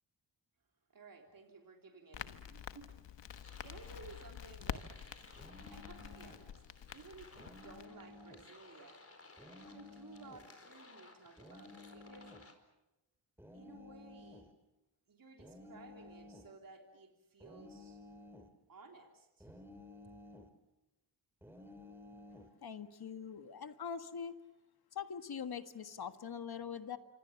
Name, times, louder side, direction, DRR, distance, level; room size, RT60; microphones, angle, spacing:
voice 1, 0.9-3.0 3.3-4.9 5.7-6.6 6.9-9.1 9.7-12.3 13.5-14.5 15.1-18.0 18.7-19.6 20.0-20.1, right 4 dB, 50° right, 2 dB, 3.3 m, -56 dB
Crackle, 2.1-7.9, left 9 dB, 80° left, 1.3 m, -47 dB
sound 1, 3.3-12.5, left 3 dB, 35° left, 4.7 m, -59 dB
sound 2, 5.4-6.5 7.3-8.5 9.4-10.5 11.4-12.5 13.4-14.5 15.4-16.5 17.4-18.5 19.4-20.5 21.4-22.5, left 2 dB, 5° right, 3.3 m, -54 dB
voice 2, 22.6-24.3 25.0-27.0, left 7 dB, 60° left, 9 dB, 1.7 m, -43 dB
27.5 x 25.0 x 7.1 m, 0.97 s
cardioid pair, 65°, 42 cm